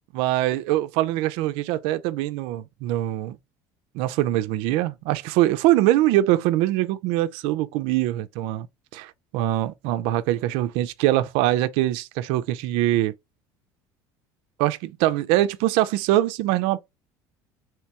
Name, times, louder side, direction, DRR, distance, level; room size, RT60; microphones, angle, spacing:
voice 1, 0.1-3.4 3.9-8.7 8.9-13.1 14.6-16.8, right 15 dB, 70° right, 0.4 m, -23 dB
3.4 x 3.0 x 2.8 m
supercardioid pair, 115°, 9 cm